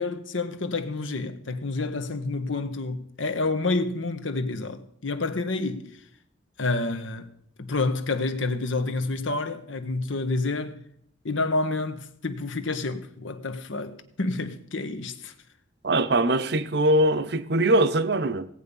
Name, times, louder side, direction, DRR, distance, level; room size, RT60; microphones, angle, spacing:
voice 1, 0.0-5.9 6.6-7.3 7.6-10.8 11.2-15.3, left 3 dB, 90° left, 1.2 m, -29 dB
voice 2, 15.8-18.5, right 1 dB, 55° right, 0.8 m, -22 dB
17.5 x 8.5 x 5.4 m
head